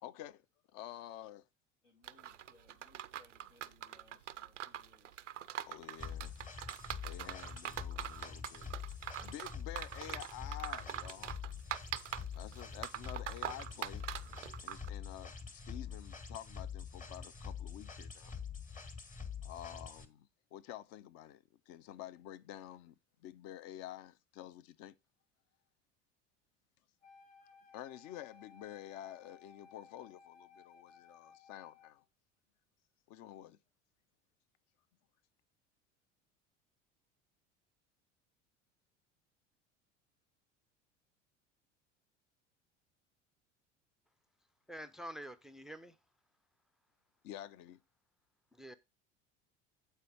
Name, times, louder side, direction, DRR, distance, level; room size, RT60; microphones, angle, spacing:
voice 1, 0.0-0.4 0.7-1.4 5.7-6.3 7.0-8.9 9.2-11.4 12.4-14.1 14.6-18.3 19.4-24.9 27.7-32.0 33.1-33.6 47.2-47.8, left 12 dB, 45° left, 0.6 m, -49 dB
voice 2, 1.8-5.2, left 3 dB, 75° left, 2.3 m, -67 dB
sound 1, 2.0-14.9, right 10 dB, 80° right, 0.5 m, -43 dB
sound 2, 6.0-20.0, left 6 dB, 20° left, 1.1 m, -45 dB
Wind instrument woodwind instrument, 27.0-32.1, left 6 dB, 60° left, 2.3 m, -60 dB
voice 3, 44.7-45.9 48.5-48.7, equal, ahead, 0.4 m, -47 dB
8.3 x 4.5 x 4.7 m
figure-of-eight pair, 70°, 37 cm